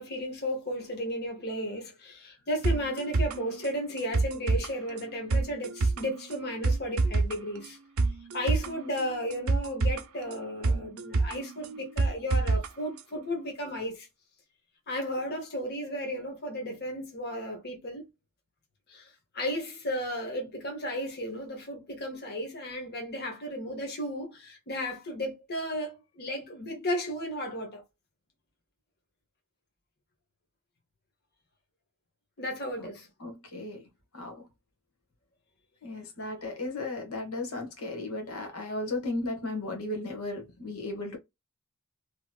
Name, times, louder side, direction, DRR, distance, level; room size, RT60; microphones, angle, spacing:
voice 1, 0.0-7.8 8.3-14.1 14.9-18.0 18.9-27.8 32.4-33.1, equal, 50° left, 1.1 m, -34 dB
sound 1, 2.6-12.7 13.0-13.1, right 3 dB, 75° right, 0.5 m, -28 dB
voice 2, 33.2-33.8 34.1-34.5 35.8-41.2, left 2 dB, 75° left, 1.1 m, -35 dB
2.9 x 2.9 x 2.3 m
head